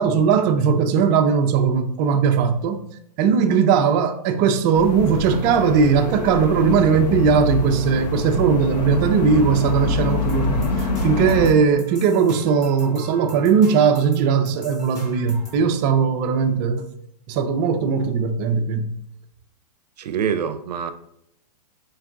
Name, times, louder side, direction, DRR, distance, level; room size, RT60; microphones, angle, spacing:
voice 1, 0.0-2.8 3.2-16.9 17.3-18.9, right 6 dB, 30° right, 0.4 m, -19 dB
sound 1, 4.7-11.5, left 2 dB, 80° left, 0.7 m, -25 dB
sound 2, 10.3-15.6, equal, 15° left, 1.0 m, -44 dB
voice 2, 20.0-20.9, right 7 dB, 80° right, 0.5 m, -25 dB
4.5 x 2.4 x 3.6 m
hypercardioid pair, 145°, 21 cm